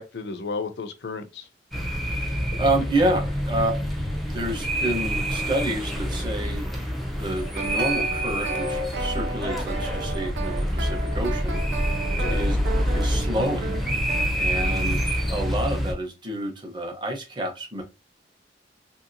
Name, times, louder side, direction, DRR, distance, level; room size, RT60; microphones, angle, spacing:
voice 1, 0.0-1.5 12.2-12.4, left 4 dB, 65° left, 0.5 m, -33 dB
sound 1, 1.7-15.9, equal, ahead, 0.5 m, -27 dB
voice 2, 2.1-3.9 4.3-6.6 7.2-11.6 12.3-12.6 12.9-13.8 14.3-17.8, right 1 dB, 25° right, 0.9 m, -29 dB
sound 2, 7.3-14.3, right 3 dB, 80° right, 0.4 m, -34 dB
3.1 x 2.7 x 2.6 m
head